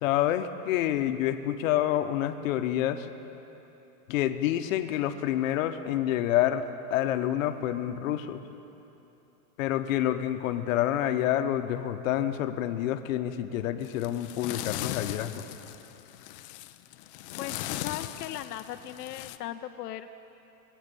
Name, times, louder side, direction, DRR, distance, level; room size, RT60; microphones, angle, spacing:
voice 1, 0.0-3.1 4.1-6.6 6.9-8.4 9.6-15.4, left 12 dB, 60° left, 8 dB, 1.0 m, -28 dB
sound 1, 13.8-19.4, left 14 dB, 40° left, 0.5 m, -39 dB
voice 2, 17.4-20.1, left 12 dB, 90° left, 7 dB, 0.7 m, -38 dB
21.0 x 8.6 x 6.9 m, 3.0 s
supercardioid pair, 145°, 46 cm